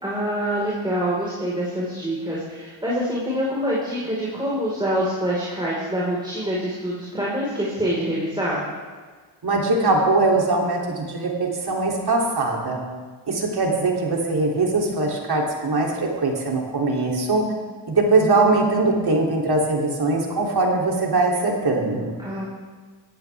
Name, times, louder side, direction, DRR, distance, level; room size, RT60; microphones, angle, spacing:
voice 1, 0.0-8.6 22.2-22.5, equal, 10° right, -6 dB, 4.6 m, -25 dB
voice 2, 9.4-12.8 13.3-17.5 17.8-22.2, right 3 dB, 55° right, -1 dB, 3.2 m, -21 dB
19.0 x 15.0 x 3.6 m, 1.5 s
cardioid pair, 70°, 46 cm